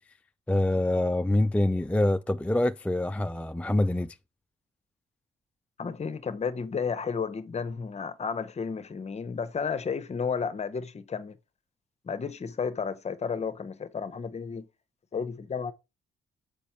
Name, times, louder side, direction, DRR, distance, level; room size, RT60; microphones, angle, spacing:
voice 1, 0.5-4.2, left 1 dB, 5° left, 0.3 m, -25 dB
voice 2, 5.8-11.4 12.0-14.7 15.1-15.7, left 6 dB, 35° left, 0.8 m, -32 dB
7.0 x 5.1 x 4.4 m
cardioid pair, 90°, 20 cm